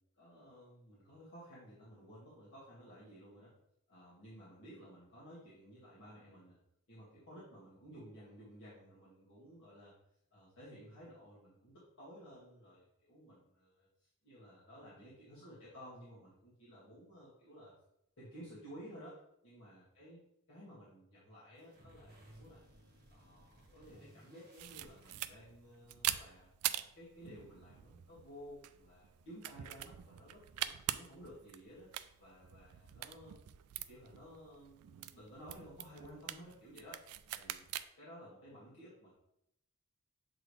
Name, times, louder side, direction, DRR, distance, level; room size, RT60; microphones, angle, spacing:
voice 1, 0.2-3.5 3.9-6.6 6.9-9.9 10.3-17.7 18.2-20.2 20.5-22.6 23.1-26.5 27.0-31.9 32.2-33.3 33.7-37.0 37.3-37.7 38.0-39.1, equal, 55° left, -10 dB, 1.9 m, -55 dB
sound 1, 21.6-25.8, right 1 dB, 40° right, 1.7 m, -61 dB
sound 2, 24.6-37.9, right 13 dB, 80° right, 0.3 m, -44 dB
7.5 x 4.0 x 3.2 m, 0.81 s
head